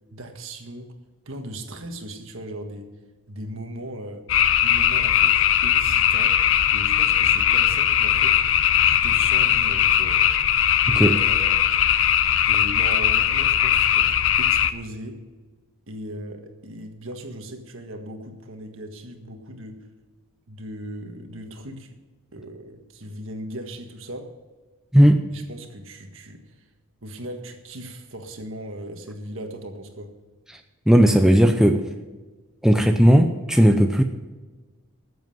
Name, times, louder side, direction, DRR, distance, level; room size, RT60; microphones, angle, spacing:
voice 1, 0.1-0.9 1.2-2.9 3.3-4.2 4.6-6.4 6.7-8.4 8.8-10.2 10.9-11.6 12.5-15.2 15.9-19.8 20.5-22.0 22.3-24.3 25.3-26.5 27.0-30.1, right 1 dB, 60° right, 5 dB, 1.6 m, -37 dB
sound 1, 4.3-14.7, left 10 dB, 60° left, 0.6 m, -19 dB
voice 2, 30.9-31.8 32.6-34.0, equal, ahead, 5 dB, 0.6 m, -16 dB
12.5 x 7.9 x 7.7 m, 1.3 s
head